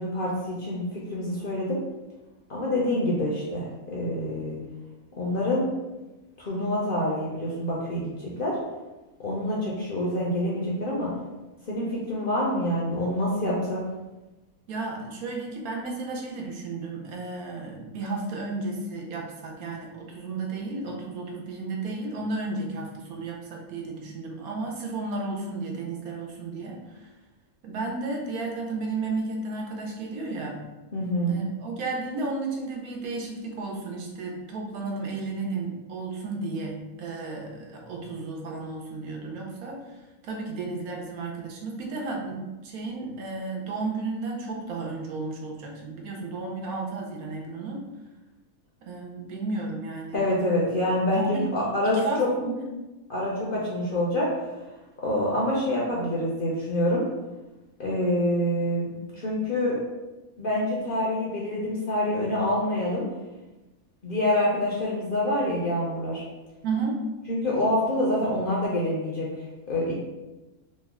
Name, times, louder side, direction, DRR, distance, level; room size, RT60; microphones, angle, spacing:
voice 1, 0.0-1.8 2.5-4.6 5.2-5.7 6.4-8.6 9.2-11.1 11.6-13.8 30.9-31.4 50.1-52.3 53.1-54.6 55.0-57.0 57.8-59.8 60.4-63.1 64.0-66.2 67.3-69.3 69.7-69.9, left 1 dB, 55° left, -5 dB, 0.6 m, -26 dB
voice 2, 14.7-27.1 27.6-30.6 31.2-39.8 40.2-47.8 48.8-50.2 51.1-52.7 66.6-67.0, right 3 dB, 85° right, 0 dB, 1.2 m, -33 dB
3.1 x 2.1 x 3.5 m, 1.1 s
omnidirectional pair, 1.5 m